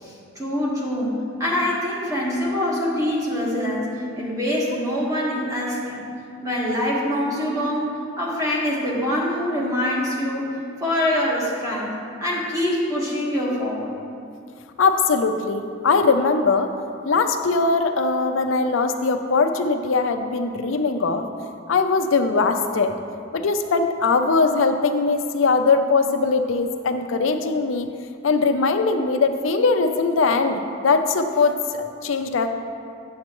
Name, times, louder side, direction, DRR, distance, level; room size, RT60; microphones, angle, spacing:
voice 1, 0.0-6.1 6.4-13.9, left 1 dB, 15° right, -5 dB, 1.5 m, -25 dB
voice 2, 14.8-16.7 17.0-21.2 21.7-22.9 23.3-27.9 28.2-32.5, left 4 dB, 75° left, 7 dB, 0.5 m, -21 dB
8.6 x 7.2 x 3.0 m, 2.4 s
head